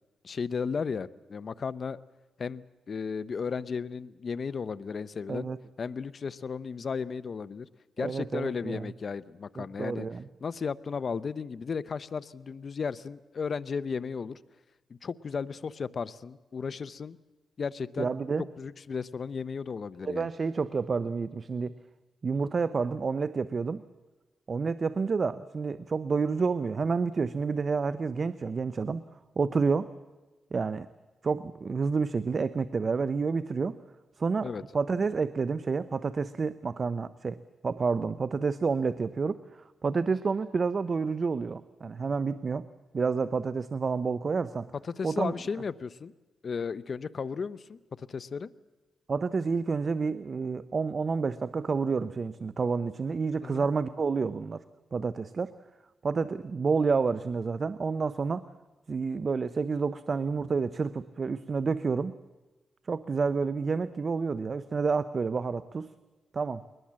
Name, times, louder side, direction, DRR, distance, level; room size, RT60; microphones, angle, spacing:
voice 1, 0.2-2.0 2.4-5.5 5.8-7.7 8.0-10.1 10.4-14.4 14.9-17.2 17.6-18.1 18.6-20.3 34.4-34.6 44.9-46.1 46.4-48.5 53.4-53.7, left 5 dB, 50° left, 16 dB, 0.7 m, -34 dB
voice 2, 8.0-8.9 9.6-10.3 18.0-18.5 20.0-21.7 22.2-23.8 24.5-29.0 29.4-29.9 30.5-30.9 31.2-33.8 34.2-42.7 42.9-44.7 45.0-45.3 49.1-54.6 54.9-55.6 56.0-58.5 58.9-62.1 62.9-65.9 66.3-66.6, right 4 dB, 45° right, 14 dB, 0.6 m, -29 dB
21.5 x 20.0 x 7.5 m, 1.2 s
cardioid pair, 90°, 0 cm